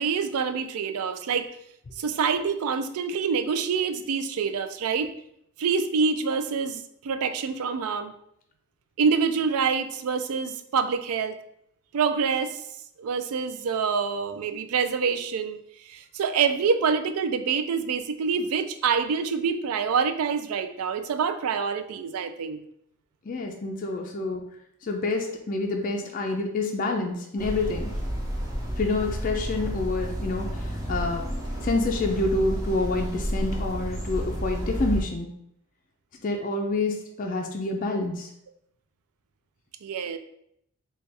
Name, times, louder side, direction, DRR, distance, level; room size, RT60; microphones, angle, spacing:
voice 1, 0.0-1.5 2.0-5.1 5.6-8.1 9.0-11.4 11.9-12.6 13.0-22.6 39.8-40.2, right 5 dB, 80° right, 9 dB, 0.4 m, -26 dB
voice 2, 23.2-24.5 24.8-27.9 28.8-31.3 31.6-35.3 36.2-38.3, left 2 dB, 35° left, 1 dB, 0.4 m, -28 dB
sound 1, 27.4-35.0, equal, 15° right, 0.7 m, -31 dB
3.2 x 2.3 x 4.1 m, 0.73 s
head